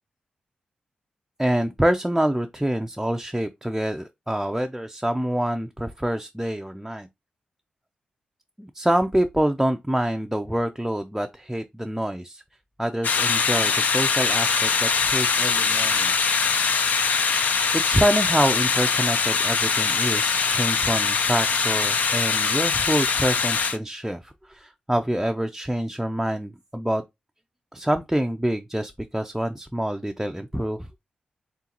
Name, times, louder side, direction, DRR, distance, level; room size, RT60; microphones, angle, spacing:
voice 1, 1.4-7.1 8.6-12.4 12.8-16.3 17.7-27.0 27.7-30.9, right 1 dB, 5° right, 0.4 m, -26 dB
sound 1, 13.0-23.8, left 5 dB, 70° left, 0.5 m, -22 dB
3.8 x 3.7 x 2.8 m
cardioid pair, 85°, 3 cm